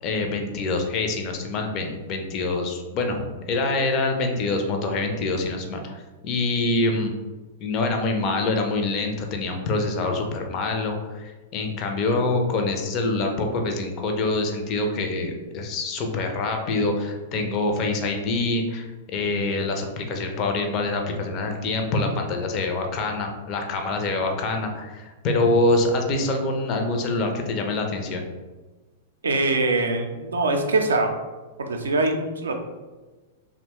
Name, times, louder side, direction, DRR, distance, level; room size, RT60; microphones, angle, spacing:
voice 1, 0.0-7.1 7.6-28.2, left 2 dB, 35° left, 3 dB, 0.4 m, -25 dB
voice 2, 29.2-31.1 31.6-32.6, right 2 dB, 70° right, 4 dB, 0.4 m, -23 dB
2.9 x 2.1 x 2.8 m, 1.3 s
figure-of-eight pair, 100°, 0 cm